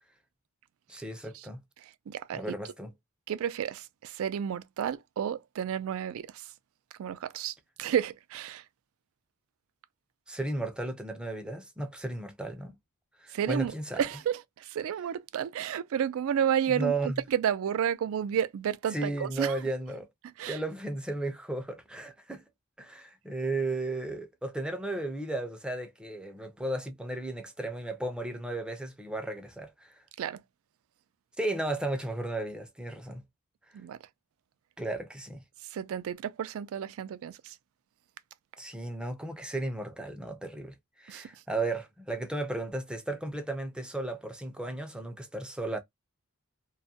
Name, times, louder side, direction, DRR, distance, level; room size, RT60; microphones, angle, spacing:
voice 1, 0.9-1.6 2.3-2.9 10.3-12.8 13.2-14.1 16.7-17.2 18.9-20.1 20.4-22.4 22.8-30.0 31.4-33.2 34.8-35.4 38.6-45.8, right 2 dB, 5° right, 0.4 m, -34 dB
voice 2, 2.1-2.6 3.3-6.3 7.0-7.5 7.8-8.6 13.3-13.7 14.0-16.9 17.3-19.5 20.4-20.6 30.2-30.4 33.7-34.0 35.7-37.5 41.1-41.2, right 9 dB, 70° right, 0.3 m, -31 dB
2.3 x 2.1 x 2.6 m
head